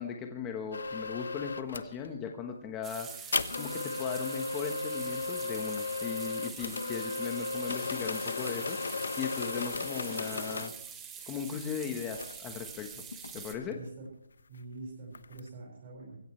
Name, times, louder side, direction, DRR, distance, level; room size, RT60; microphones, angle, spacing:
voice 1, 0.0-10.7 11.3-13.0 13.3-13.8, left 7 dB, 15° left, 4 dB, 1.1 m, -38 dB
sound 1, 0.7-1.9 3.3-10.8 12.1-12.4 12.6-13.9 15.1-15.5, left 4 dB, 80° left, 1.0 m, -35 dB
sound 2, 2.8-13.5, right 7 dB, 10° right, 1.4 m, -45 dB
voice 2, 13.7-14.1 14.5-16.2, right 3 dB, 30° right, -3 dB, 5.0 m, -45 dB
23.0 x 16.0 x 3.2 m, 0.74 s
hypercardioid pair, 170°, 0 cm